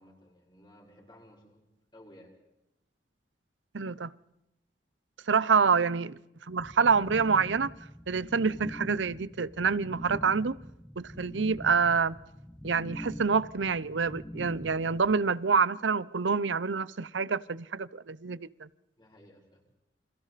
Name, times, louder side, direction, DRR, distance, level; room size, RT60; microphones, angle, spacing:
voice 1, 0.0-1.6 1.9-2.3 5.4-5.7 19.0-19.7, left 1 dB, 25° left, -1 dB, 5.5 m, -56 dB
voice 2, 3.7-4.1 5.3-6.2 6.5-7.7 8.1-10.6 11.0-12.2 12.6-18.7, right 5 dB, 85° right, 19 dB, 0.7 m, -27 dB
sound 1, 6.6-15.1, equal, 5° left, 1.0 m, -44 dB
30.0 x 27.0 x 4.2 m, 0.90 s
head